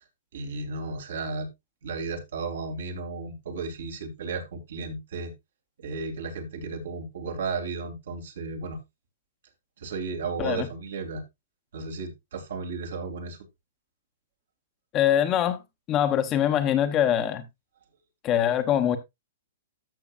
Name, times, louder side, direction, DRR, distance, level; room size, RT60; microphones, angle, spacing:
voice 1, 0.3-1.5 1.8-5.3 5.8-8.8 9.8-11.2 11.7-13.4, right 4 dB, 75° right, 3.0 m, -34 dB
voice 2, 14.9-15.6 15.9-17.4 18.2-19.0, left 10 dB, 20° left, 1.0 m, -23 dB
13.5 x 6.2 x 2.5 m
hypercardioid pair, 160°, 0 cm